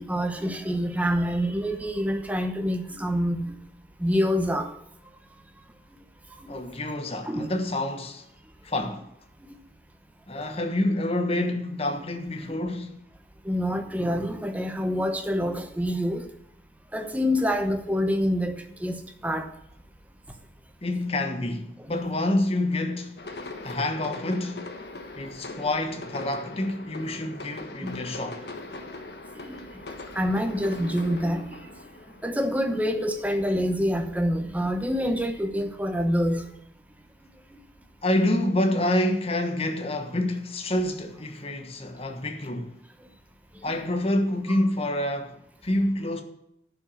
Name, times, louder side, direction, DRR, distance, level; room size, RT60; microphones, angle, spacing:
voice 1, 0.0-3.5 4.0-4.7 7.3-7.5 13.4-16.2 16.9-19.5 27.8-28.0 29.5-29.6 30.1-31.5 32.2-36.4, equal, 10° right, 1.0 m, -26 dB
voice 2, 6.5-8.3 8.6-9.1 10.3-13.0 20.8-23.2 23.6-24.6 25.2-28.4 38.0-42.8 43.6-46.2, left 1 dB, 35° left, 1.2 m, -27 dB
sound 1, 23.2-33.1, left 2 dB, 65° left, 1.4 m, -41 dB
11.0 x 6.0 x 7.1 m
head